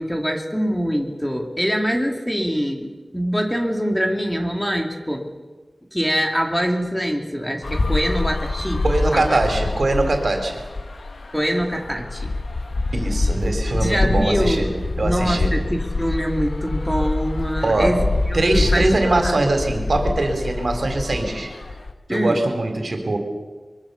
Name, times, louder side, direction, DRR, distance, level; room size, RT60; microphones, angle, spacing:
voice 1, 0.0-5.3 5.9-8.8 9.1-9.4 11.3-12.3 13.8-14.6 15.0-19.4 22.1-22.5, equal, 5° left, 3 dB, 2.8 m, -24 dB
sound 1, 7.6-21.9, left 2 dB, 70° left, 1.7 m, -25 dB
voice 2, 8.8-10.6 12.9-15.6 17.6-18.1 18.3-21.5 22.1-23.2, right 2 dB, 65° right, 5 dB, 4.1 m, -22 dB
24.0 x 24.0 x 7.1 m, 1.3 s
wide cardioid pair, 80°, 0 cm